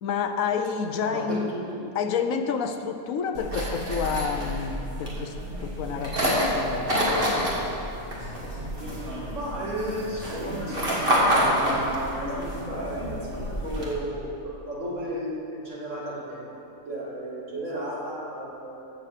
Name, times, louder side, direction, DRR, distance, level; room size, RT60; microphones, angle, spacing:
voice 1, 0.0-1.5 1.9-6.9, left 6 dB, 85° left, 8 dB, 1.1 m, -29 dB
voice 2, 1.0-1.9 9.3-19.1, right 1 dB, 65° right, -5 dB, 2.7 m, -34 dB
sound 1, 3.3-13.9, equal, 40° right, 2.4 m, -28 dB
15.0 x 7.3 x 5.0 m, 2.7 s
omnidirectional pair, 1.4 m